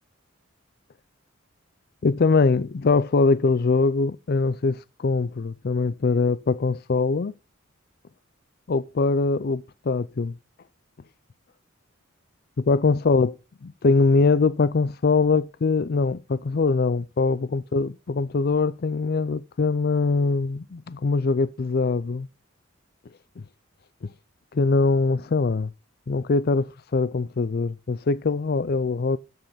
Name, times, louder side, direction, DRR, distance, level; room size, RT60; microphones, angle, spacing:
voice 1, 2.0-7.3 8.7-10.4 12.6-13.3 13.6-22.3 24.5-25.7 26.1-29.2, left 4 dB, 50° left, 0.4 m, -22 dB
13.5 x 5.6 x 5.6 m
head